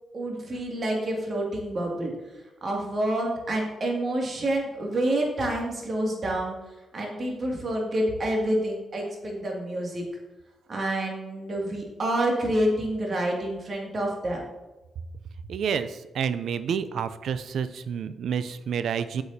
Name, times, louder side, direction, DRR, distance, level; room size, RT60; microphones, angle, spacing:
voice 1, 0.1-2.1 2.6-6.6 6.9-10.1 10.7-14.4, right 1 dB, 50° right, -1 dB, 2.2 m, -28 dB
voice 2, 15.5-19.2, right 7 dB, 75° right, 13 dB, 0.4 m, -29 dB
8.7 x 6.8 x 2.7 m, 1.1 s
cardioid pair, 65°, 0 cm